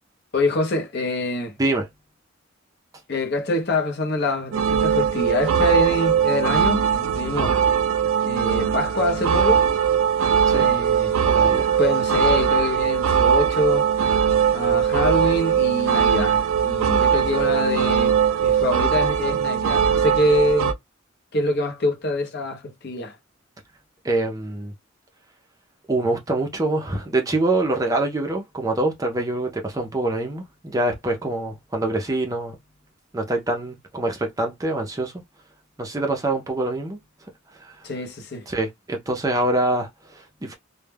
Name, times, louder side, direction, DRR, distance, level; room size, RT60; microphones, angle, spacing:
voice 1, 0.3-1.5 3.1-7.6 8.2-9.7 10.5-11.2 11.8-14.1 14.5-20.7 21.3-23.2 37.8-38.5, left 2 dB, 50° left, 0.6 m, -25 dB
sound 1, 4.5-20.7, right 8 dB, 80° right, 0.4 m, -20 dB
voice 2, 11.2-11.6 24.0-24.7 25.9-32.5 33.1-35.1 35.8-37.0 37.6-37.8 38.5-40.6, right 2 dB, 15° right, 0.4 m, -25 dB
2.2 x 2.1 x 3.2 m
head